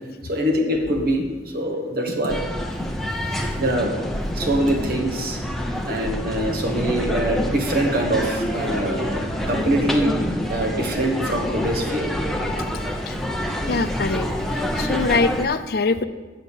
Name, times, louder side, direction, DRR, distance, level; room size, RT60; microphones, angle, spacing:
voice 1, 0.2-2.5 3.6-3.9 4.3-5.4 5.8-10.1 10.5-12.1, right 1 dB, 55° right, 2 dB, 1.6 m, -24 dB
sound 1, 2.3-15.5, equal, ahead, 0.7 m, -27 dB
voice 2, 13.7-16.0, left 3 dB, 55° left, 11 dB, 0.5 m, -24 dB
7.3 x 6.8 x 8.1 m, 1.3 s
head